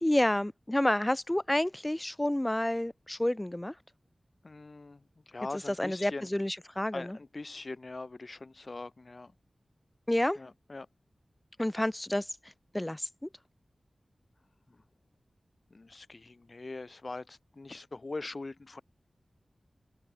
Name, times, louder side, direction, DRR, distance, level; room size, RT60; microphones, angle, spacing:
voice 1, 0.0-3.7 5.8-7.2 10.1-10.4 11.6-12.4 12.7-13.3, left 1 dB, 15° left, 0.6 m, -29 dB
voice 2, 4.4-6.3 6.9-9.3 10.4-10.9 14.7-14.8 15.7-18.8, left 3 dB, 50° left, 1.8 m, -42 dB
wide cardioid pair, 70°, 0 cm